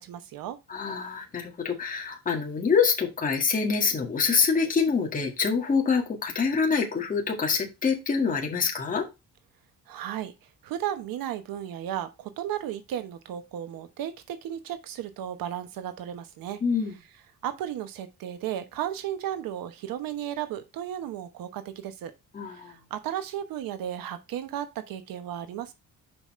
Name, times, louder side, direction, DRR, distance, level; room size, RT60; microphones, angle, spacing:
voice 1, 0.0-0.6 9.9-10.3 10.6-16.6 17.4-22.1 22.4-25.7, right 11 dB, 80° right, 1.1 m, -34 dB
voice 2, 0.7-9.1 16.6-16.9 22.3-22.7, left 5 dB, 25° left, 1.9 m, -25 dB
7.0 x 5.5 x 3.2 m
cardioid pair, 165°, 34 cm